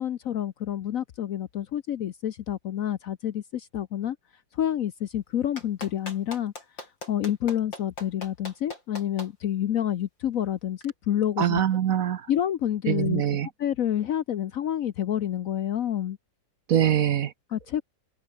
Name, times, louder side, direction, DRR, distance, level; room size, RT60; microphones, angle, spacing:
voice 1, 0.0-4.2 4.6-6.5 7.1-11.6 12.3-13.2 13.6-16.2 17.5-17.8, left 10 dB, 60° left, 0.9 m, -28 dB
Clapping, 5.6-9.3 10.8-10.9, left 2 dB, 85° left, 8.1 m, -39 dB
voice 2, 11.4-12.2 12.9-13.5 16.7-17.3, right 10 dB, 60° right, 1.1 m, -23 dB
omnidirectional pair, 2.0 m